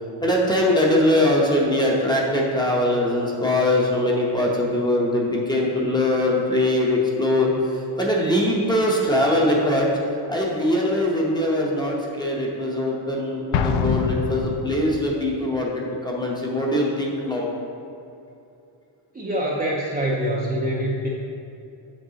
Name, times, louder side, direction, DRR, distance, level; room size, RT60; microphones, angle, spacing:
voice 1, 0.2-7.5 8.0-9.9 10.3-15.7 16.0-17.5, left 1 dB, 10° left, -3 dB, 0.8 m, -22 dB
Explosion, 13.5-15.1, left 5 dB, 85° left, 0.6 m, -25 dB
voice 2, 19.1-21.1, right 1 dB, 20° right, -5 dB, 0.6 m, -25 dB
7.7 x 5.9 x 2.8 m, 2.7 s
cardioid pair, 140°, 49 cm